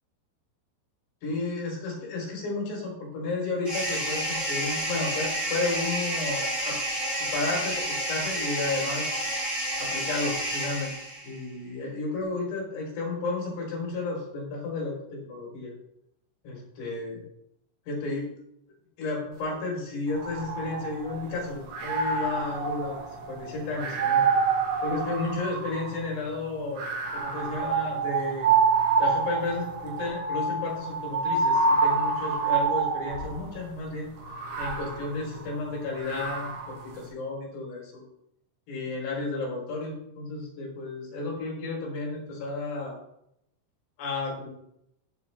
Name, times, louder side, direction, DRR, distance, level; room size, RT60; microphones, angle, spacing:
voice 1, 1.2-6.8 7.2-9.1 9.8-10.9 11.2-15.7 16.4-17.2 17.9-18.3 19.0-23.0 23.3-24.3 24.8-26.8 27.1-28.5 29.0-34.1 34.6-38.0 38.7-42.9 44.0-44.5, left 3 dB, 65° left, -2 dB, 6.2 m, -32 dB
sound 1, 3.6-11.4, right 1 dB, 10° right, 3.8 m, -30 dB
sound 2, 20.1-21.3 21.7-26.1 26.8-33.4 34.2-36.8, right 4 dB, 60° right, 3.5 m, -27 dB
15.0 x 7.4 x 3.5 m, 0.77 s
omnidirectional pair, 5.3 m